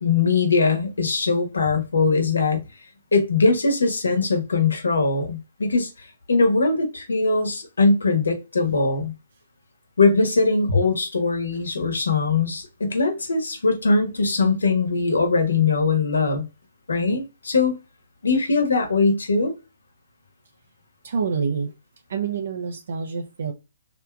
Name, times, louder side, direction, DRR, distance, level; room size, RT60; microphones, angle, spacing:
voice 1, 0.0-2.6 3.1-9.1 10.0-16.4 16.9-17.8 18.2-19.5, left 3 dB, 85° left, 1.2 m, -21 dB
voice 2, 21.0-21.7 22.1-23.5, right 5 dB, 65° right, 0.6 m, -27 dB
3.3 x 2.9 x 2.3 m
hypercardioid pair, 140°, 0 cm